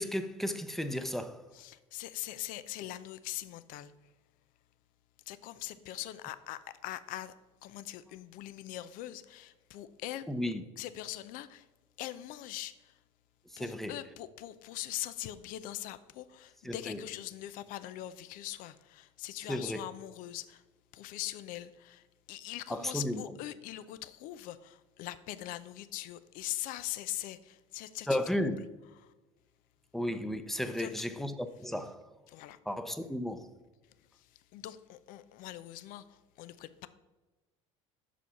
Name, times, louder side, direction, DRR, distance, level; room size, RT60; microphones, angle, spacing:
voice 1, 0.0-1.5 10.3-10.6 13.5-13.9 16.6-17.0 19.5-19.9 22.7-23.2 28.1-28.6 29.9-32.1 32.7-33.5, left 1 dB, ahead, 0.7 m, -34 dB
voice 2, 1.5-4.1 5.3-7.3 7.6-10.3 10.8-11.7 12.0-13.0 13.6-20.6 20.9-28.5 29.0-29.1 30.7-30.9 32.3-32.6 34.0-36.9, left 14 dB, 65° left, 0.5 m, -42 dB
6.5 x 5.1 x 5.6 m
supercardioid pair, 85°, 15 cm